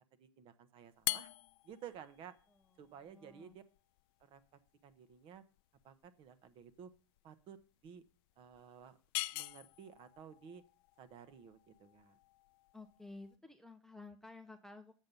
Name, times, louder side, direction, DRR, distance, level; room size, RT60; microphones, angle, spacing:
voice 1, 0.2-1.3 1.6-2.4 2.8-3.6 4.2-4.4 4.8-5.4 5.8-6.9 7.2-7.6 7.8-8.0 8.4-9.0 9.3-10.6 11.0-12.2, right 8 dB, 35° right, 12 dB, 0.9 m, -54 dB
sound 1, 0.9-13.4, left 20 dB, 45° left, 0.4 m, -45 dB
voice 2, 2.5-3.6 12.7-15.0, left 3 dB, 5° left, 6 dB, 0.7 m, -54 dB
7.6 x 7.3 x 5.4 m, 0.38 s
hypercardioid pair, 120°, 16 cm